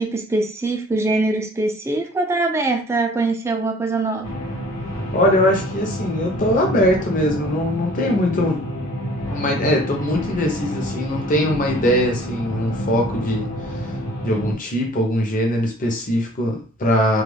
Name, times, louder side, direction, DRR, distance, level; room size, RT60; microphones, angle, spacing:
voice 1, 0.0-4.3, right 2 dB, 15° right, 4 dB, 0.3 m, -22 dB
sound 1, 4.2-14.5, equal, 80° left, 0.8 m, -28 dB
voice 2, 5.1-8.6 9.3-13.9 14.2-17.2, equal, 40° left, 1 dB, 0.6 m, -21 dB
2.3 x 2.2 x 3.3 m, 0.39 s
head